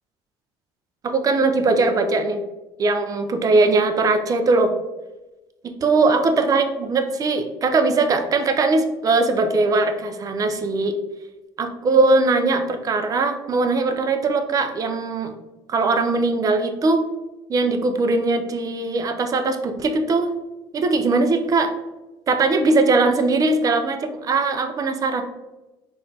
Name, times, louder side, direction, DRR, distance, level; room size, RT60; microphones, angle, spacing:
voice 1, 1.0-2.4 2.8-4.7 5.6-11.0 11.6-15.3 15.7-17.0 17.5-20.3 20.7-21.7 22.3-25.2, right 3 dB, 35° right, 7 dB, 0.6 m, -20 dB
4.2 x 2.6 x 4.1 m, 1.1 s
supercardioid pair, 95°, 11 cm